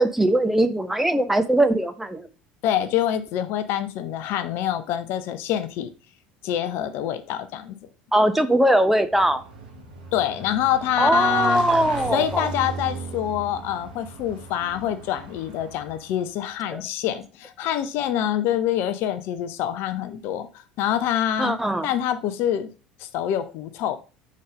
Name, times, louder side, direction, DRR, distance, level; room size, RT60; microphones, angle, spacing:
voice 1, 0.0-2.3 8.1-9.4 11.0-12.5 16.7-16.8 21.4-21.9, right 1 dB, 5° right, 10 dB, 0.7 m, -20 dB
voice 2, 2.6-5.9 6.4-7.8 10.1-11.6 12.1-20.5 20.8-21.6 21.8-22.7 23.0-24.0, left 10 dB, 55° left, 11 dB, 0.5 m, -26 dB
Motorcycle / Engine, 9.0-16.3, right 4 dB, 75° right, 1.3 m, -37 dB
5.2 x 3.9 x 5.0 m, 0.36 s
figure-of-eight pair, 65°, 5 cm